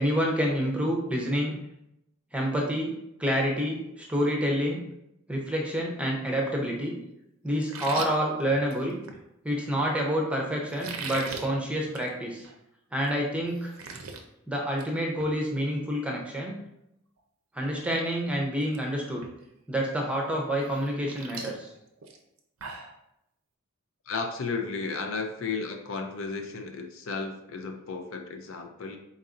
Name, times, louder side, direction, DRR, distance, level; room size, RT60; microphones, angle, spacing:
voice 1, 0.0-1.5 2.3-2.9 3.2-4.8 5.3-7.0 7.4-9.0 9.4-12.5 12.9-13.7 14.5-16.6 17.5-19.2 19.7-21.7, equal, 5° right, -1 dB, 0.6 m, -28 dB
sound 1, 7.6-9.2 10.7-11.5 11.9-12.1 12.4-12.5 13.0-13.1 13.4-14.2 14.6-14.9 15.2-15.3 17.2-17.3 17.7-18.0 18.3-18.8 19.2-19.3 20.7-23.0, right 4 dB, 85° right, 0.6 m, -39 dB
voice 2, 24.1-29.0, left 4 dB, 70° left, 5 dB, 0.5 m, -34 dB
4.0 x 4.0 x 2.5 m, 0.82 s
head